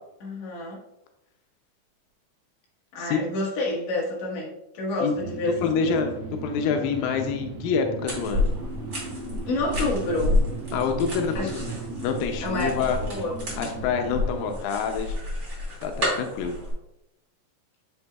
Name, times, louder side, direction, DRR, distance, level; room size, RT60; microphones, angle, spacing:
voice 1, 0.2-0.8 2.9-6.0 9.5-10.4 11.3-11.8 12.4-13.3, left 2 dB, 60° left, -3 dB, 2.3 m, -29 dB
sound 1, 5.1-14.6, right 3 dB, 65° right, 1.4 m, -37 dB
voice 2, 5.6-6.2 6.4-8.5 10.7-11.6 12.0-13.0 13.6-15.2 15.8-16.6, left 6 dB, 90° left, 5 dB, 2.4 m, -27 dB
sound 2, 8.1-16.7, left 2 dB, 25° right, 2.1 m, -30 dB
7.9 x 6.0 x 2.3 m, 0.88 s
omnidirectional pair, 3.9 m